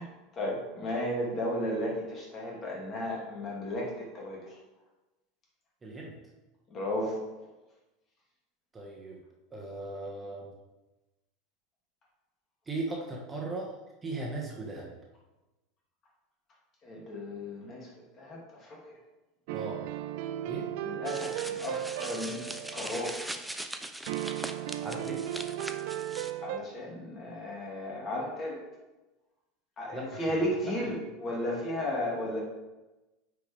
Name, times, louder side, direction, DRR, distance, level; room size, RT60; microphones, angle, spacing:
voice 1, 0.0-4.6 6.7-7.2 16.8-17.9 18.2-19.0 20.8-23.2 26.4-28.6 29.8-32.4, left 1 dB, 35° left, -3 dB, 2.8 m, -34 dB
voice 2, 5.8-6.1 8.7-9.2 9.5-10.5 12.7-13.7 14.0-14.9 19.5-19.8 20.5-20.7 24.8-25.2 29.9-30.4 30.7-30.8, right 2 dB, 20° right, -2 dB, 1.6 m, -37 dB
sound 1, 19.5-23.2 24.1-26.6, right 12 dB, 60° right, 0.4 m, -36 dB
sound 2, 21.1-26.3, right 1 dB, 5° right, 0.6 m, -41 dB
8.9 x 5.0 x 3.6 m, 1.1 s
hypercardioid pair, 80°, 0 cm